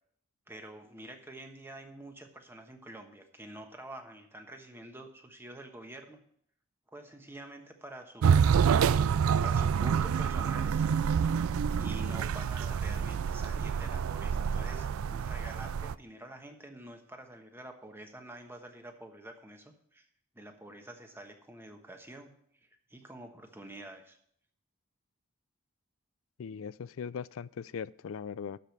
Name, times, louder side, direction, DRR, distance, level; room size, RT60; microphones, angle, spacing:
voice 1, 0.5-6.2 6.9-8.4 9.4-10.8 11.7-20.0 20.3-22.3 22.9-24.2, right 1 dB, 10° right, 4 dB, 1.2 m, -47 dB
sound 1, 8.2-15.9, right 7 dB, 90° right, 0.4 m, -27 dB
voice 2, 26.4-28.6, left 6 dB, 70° left, 20 dB, 0.4 m, -39 dB
12.5 x 5.1 x 7.1 m, 0.66 s
head